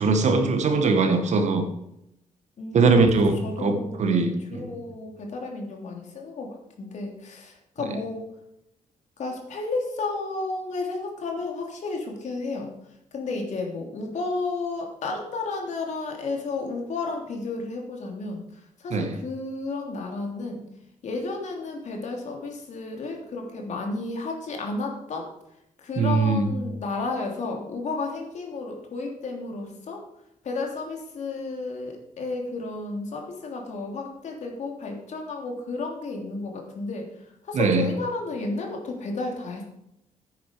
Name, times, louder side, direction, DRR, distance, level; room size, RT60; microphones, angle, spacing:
voice 1, 0.0-1.7 2.7-4.7 18.9-19.1 26.0-26.5 37.5-37.9, right 4 dB, 60° right, 6 dB, 1.9 m, -21 dB
voice 2, 2.6-3.1 3.4-8.3 9.2-12.7 13.1-20.7 21.0-25.3 25.8-30.0 30.4-37.1 37.4-39.6, left 3 dB, 60° left, 1 dB, 3.1 m, -32 dB
10.0 x 9.6 x 5.2 m, 0.81 s
cardioid pair, 135°, 14 cm